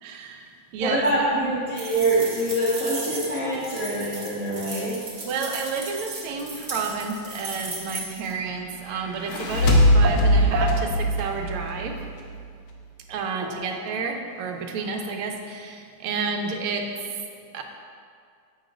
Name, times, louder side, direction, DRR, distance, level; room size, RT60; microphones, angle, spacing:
voice 1, 0.0-1.0 1.3-1.5 5.2-12.0 13.1-16.9 17.5-17.6, right 4 dB, 90° right, 3 dB, 1.6 m, -30 dB
voice 2, 0.8-5.0 13.4-13.5, right 1 dB, 10° right, -10 dB, 0.7 m, -25 dB
sound 1, 1.8-8.3, right 2 dB, 65° right, 0.4 m, -36 dB
sound 2, 9.1-12.4, equal, 80° left, 1.6 m, -21 dB
7.6 x 3.1 x 4.9 m, 2.2 s
omnidirectional pair, 2.3 m